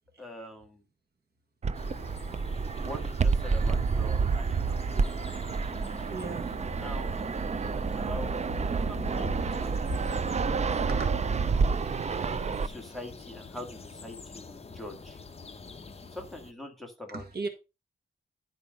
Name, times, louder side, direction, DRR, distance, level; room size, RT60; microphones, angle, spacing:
voice 1, 0.2-0.8 2.8-4.8 6.8-7.1 7.4-9.7 10.0-10.3 10.8-11.0 11.4-15.2 16.1-17.2, left 1 dB, ahead, 2.0 m, -44 dB
Fixed-wing aircraft airplane, 1.6-12.7, right 5 dB, 35° right, 0.4 m, -29 dB
sound 1, 1.7-16.5, left 4 dB, 30° left, 0.8 m, -47 dB
voice 2, 6.1-6.7 7.5-7.9 8.5-10.1 10.5-10.6 10.9-11.1 17.1-17.5, right 2 dB, 50° right, 1.8 m, -37 dB
11.5 x 4.6 x 5.3 m
wide cardioid pair, 175°, 21 cm